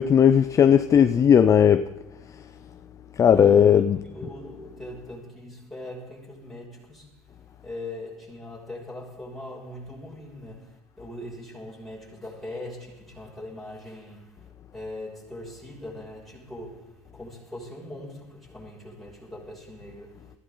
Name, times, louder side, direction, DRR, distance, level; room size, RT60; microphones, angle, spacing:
voice 1, 0.0-1.8 3.2-4.0, left 8 dB, 30° left, 0.5 m, -17 dB
voice 2, 3.2-7.1 7.6-14.4 14.7-20.3, left 1 dB, 5° left, 6.6 m, -41 dB
21.5 x 16.0 x 3.9 m
cardioid pair, 120°, 11 cm